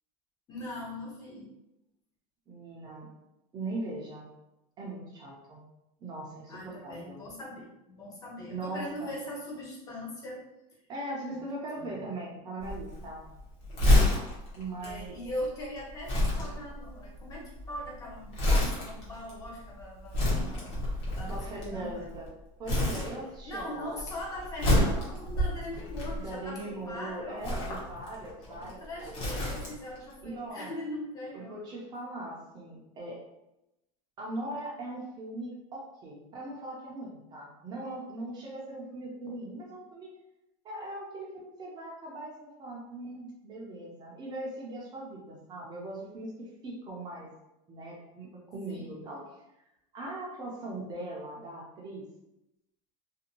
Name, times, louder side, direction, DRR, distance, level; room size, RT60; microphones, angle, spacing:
voice 1, 0.5-1.5 6.5-10.4 11.3-11.4 11.8-12.1 14.8-22.1 23.4-27.8 28.4-31.6 48.7-49.1, left 1 dB, 20° left, -4 dB, 0.6 m, -41 dB
voice 2, 2.5-3.1 3.5-4.3 4.8-5.6 6.0-7.2 8.5-8.8 10.9-13.2 14.5-15.1 21.2-22.3 22.6-24.0 26.1-29.3 30.2-30.7 31.3-33.2 34.2-40.1 40.6-47.3 47.7-49.2 49.9-52.1, right 2 dB, 25° right, -3 dB, 0.5 m, -40 dB
Crumpling crinkling, 12.6-22.3 22.6-23.6 23.9-26.6 27.3-30.0 30.3-30.4, left 1 dB, 45° left, 1.0 m, -29 dB
2.6 x 2.1 x 2.8 m, 0.91 s
supercardioid pair, 165°, 18 cm